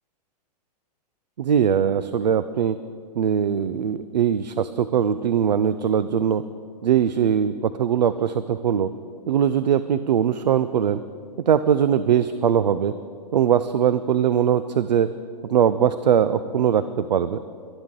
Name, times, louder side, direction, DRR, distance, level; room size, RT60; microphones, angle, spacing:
voice 1, 1.4-2.8 3.2-6.4 6.8-8.9 9.3-11.0 11.5-12.9 13.3-15.1 15.5-17.4, right 8 dB, 85° right, 13 dB, 0.5 m, -21 dB
23.0 x 9.8 x 3.8 m, 2.2 s
hypercardioid pair, 115°, 21 cm